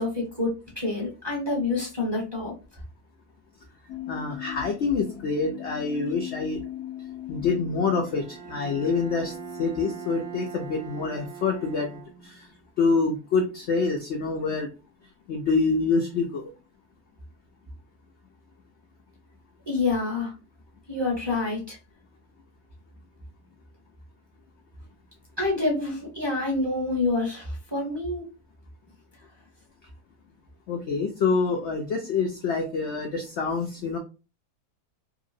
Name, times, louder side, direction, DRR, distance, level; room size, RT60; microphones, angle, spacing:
voice 1, 0.0-2.5 19.7-20.3 20.9-21.8 25.4-28.3, left 3 dB, 20° right, -3 dB, 0.7 m, -27 dB
sound 1, 3.9-10.9, left 11 dB, 85° left, 1.1 m, -40 dB
voice 2, 4.1-6.6 7.3-12.5 12.8-14.7 15.3-16.5 30.7-34.0, left 4 dB, 70° left, 2 dB, 0.6 m, -26 dB
Bowed string instrument, 8.0-12.6, right 10 dB, 70° right, 1.0 m, -41 dB
2.9 x 2.7 x 2.5 m, 0.31 s
omnidirectional pair, 1.6 m